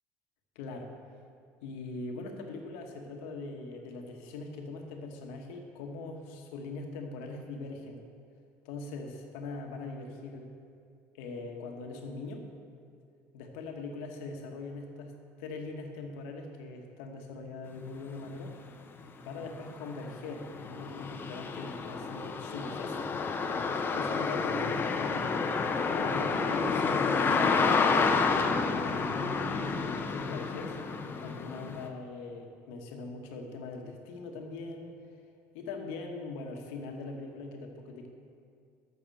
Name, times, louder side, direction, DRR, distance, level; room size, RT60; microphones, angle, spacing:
voice 1, 0.5-0.9 1.6-8.0 8.6-10.5 11.1-12.4 13.3-15.1 15.4-18.5 19.2-23.0 23.9-25.6 26.0-28.6 28.9-30.8 31.2-35.0 35.5-38.1, left 3 dB, 80° left, 3 dB, 1.2 m, -41 dB
sound 1, 18.5-18.6 19.0-31.9, left 4 dB, 30° left, 0.7 m, -30 dB
7.0 x 5.9 x 7.5 m, 2.4 s
supercardioid pair, 95°, 7 cm